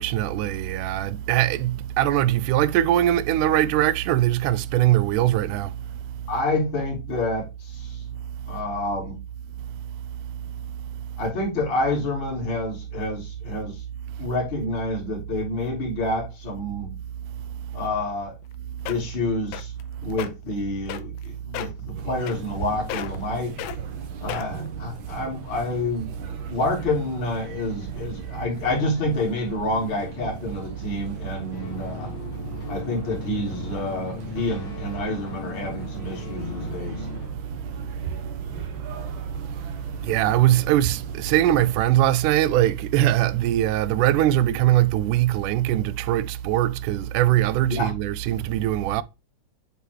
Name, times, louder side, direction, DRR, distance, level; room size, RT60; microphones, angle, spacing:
voice 1, 0.0-5.7 17.7-17.8 40.0-49.0, right 13 dB, 90° right, 2.1 m, -21 dB
voice 2, 6.3-8.0 8.5-9.2 11.2-13.8 14.2-17.0 17.7-18.3 18.8-19.7 20.0-23.5 24.2-32.1 32.7-37.1 38.5-38.6 47.7-47.9, left 2 dB, 40° left, 3.2 m, -28 dB
sound 1, 18.4-18.5 18.9-19.2 19.5-19.8 20.1-20.3 20.9-21.2 21.5-21.8 22.3-22.6 22.9-23.3 23.6-23.8 24.3-24.7 25.3-25.4, left 13 dB, 85° left, 2.1 m, -33 dB
sound 2, 22.0-41.8, right 4 dB, 75° right, 1.2 m, -38 dB
sound 3, 31.5-37.3, left 6 dB, 60° left, 2.5 m, -39 dB
8.2 x 4.0 x 3.0 m
omnidirectional pair, 3.5 m